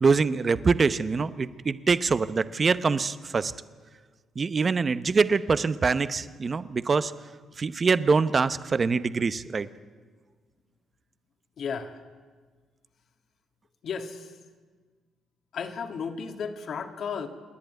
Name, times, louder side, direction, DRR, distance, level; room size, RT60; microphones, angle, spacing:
voice 1, 0.0-3.5 4.4-7.1 7.6-9.7, right 4 dB, 35° right, 14 dB, 0.8 m, -24 dB
voice 2, 11.6-12.0 13.8-14.3 15.5-17.3, left 6 dB, 60° left, 6 dB, 2.0 m, -34 dB
28.0 x 10.5 x 9.3 m, 1.5 s
cardioid pair, 90°, 0 cm